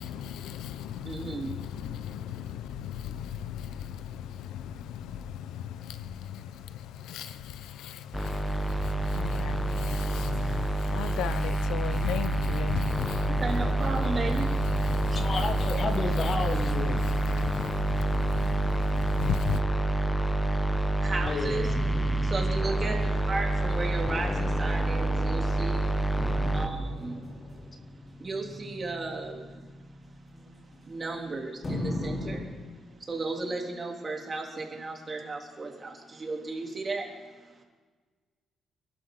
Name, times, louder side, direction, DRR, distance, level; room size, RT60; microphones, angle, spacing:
voice 1, 0.0-19.6, left 9 dB, 90° left, 12 dB, 0.7 m, -37 dB
voice 2, 1.0-1.5 13.4-14.5 15.1-15.2 21.0-21.7 22.2-25.9 26.5-27.3 28.2-29.6 30.9-32.5 33.0-37.1, right 3 dB, 35° right, 1 dB, 3.1 m, -34 dB
sound 1, 8.1-26.7, right 1 dB, 5° left, 1.2 m, -27 dB
voice 3, 15.1-17.0 21.2-21.6 27.6-27.7 30.3-30.7, left 3 dB, 45° left, 4 dB, 2.4 m, -32 dB
sound 2, 21.6-25.3 26.2-31.2 31.6-32.4, left 1 dB, 30° left, 3.9 m, -39 dB
27.5 x 12.0 x 3.9 m, 1.4 s
cardioid pair, 90°, 0 cm